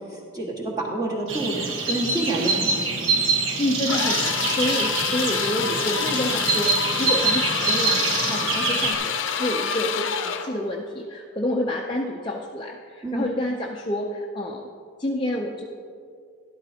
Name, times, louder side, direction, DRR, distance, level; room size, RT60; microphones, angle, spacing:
voice 1, 0.1-2.8 13.0-13.3, right 2 dB, 20° right, -4 dB, 1.6 m, -28 dB
sound 1, 1.3-8.9, right 4 dB, 75° right, 1.2 m, -25 dB
voice 2, 3.6-14.7 15.0-15.6, left 1 dB, 25° left, -1 dB, 0.5 m, -28 dB
sound 2, 3.9-10.5, left 6 dB, 65° left, 0.6 m, -27 dB
13.0 x 11.5 x 2.8 m, 2.3 s
head